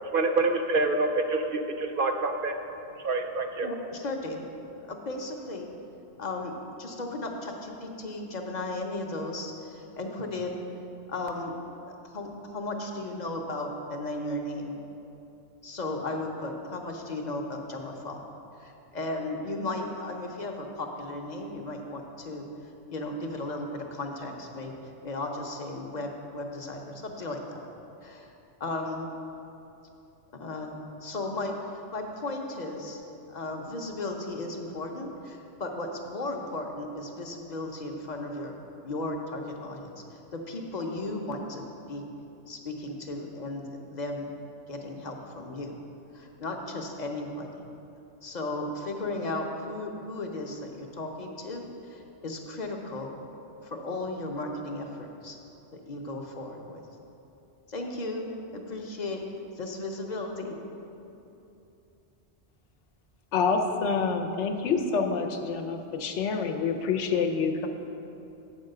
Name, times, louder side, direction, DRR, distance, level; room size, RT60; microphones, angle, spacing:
voice 1, 0.0-2.6 3.0-3.7, right 3 dB, 60° right, 6 dB, 0.6 m, -27 dB
voice 2, 3.6-4.5 4.8-5.7 6.2-10.7 11.1-11.6 11.8-14.7 15.6-18.3 18.6-22.5 22.9-24.7 25.0-27.7 28.0-28.3 28.6-29.1 30.3-33.0 33.3-38.5 38.8-40.0 40.3-42.0 42.5-44.3 44.7-45.8 46.1-47.7 48.2-53.2 53.6-55.4 55.7-56.9 57.7-58.3 58.5-59.2 59.5-60.6, left 2 dB, 45° left, 2 dB, 0.7 m, -35 dB
voice 3, 63.3-67.7, left 5 dB, 80° left, 5 dB, 1.0 m, -27 dB
8.0 x 4.8 x 6.5 m, 2.9 s
omnidirectional pair, 1.2 m